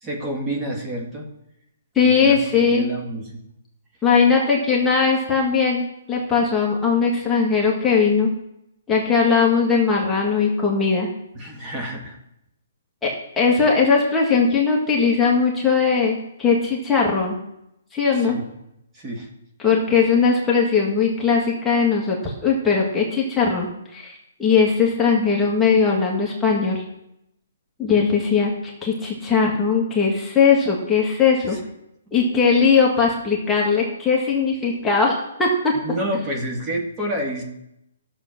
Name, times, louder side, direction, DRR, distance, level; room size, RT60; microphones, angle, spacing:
voice 1, 0.0-1.3 2.0-3.4 11.4-12.2 18.2-18.4 18.9-19.3 31.5-31.6 32.3-32.4 35.8-37.4, right 1 dB, 15° right, 0 dB, 1.9 m, -29 dB
voice 2, 1.9-2.9 4.0-8.3 8.9-11.1 13.0-17.4 17.9-18.3 19.6-26.8 27.8-28.5 28.8-31.6 32.1-36.0, left 5 dB, 10° left, -3 dB, 1.7 m, -19 dB
12.5 x 7.0 x 5.9 m, 0.83 s
hypercardioid pair, 160°, 0 cm